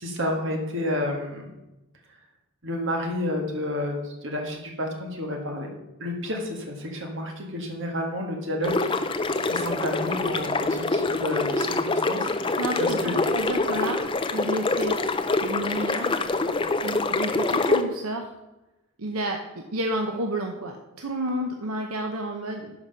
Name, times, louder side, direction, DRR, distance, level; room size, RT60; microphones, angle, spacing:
voice 1, 0.0-1.5 2.6-5.7 6.0-13.2, left 1 dB, 55° right, 2 dB, 1.8 m, -30 dB
sound 1, 8.6-17.8, left 3 dB, 25° left, 0.5 m, -25 dB
voice 2, 12.6-14.0 14.3-15.0 15.4-16.2 16.8-18.3 19.0-22.7, right 1 dB, 80° right, 3 dB, 0.9 m, -30 dB
11.0 x 4.9 x 5.6 m, 0.98 s
head